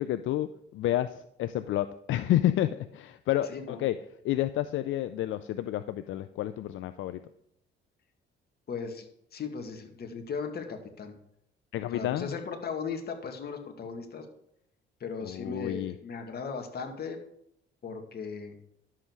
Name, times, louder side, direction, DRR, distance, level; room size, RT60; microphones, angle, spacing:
voice 1, 0.0-3.9 4.2-7.2 11.7-12.3 15.2-15.9, left 13 dB, 80° left, 11 dB, 0.5 m, -30 dB
voice 2, 3.5-3.8 8.7-11.1 11.9-14.3 15.0-17.2 17.8-18.6, left 5 dB, 55° left, 4 dB, 2.0 m, -37 dB
11.5 x 7.7 x 4.7 m, 0.74 s
cardioid pair, 90°, 20 cm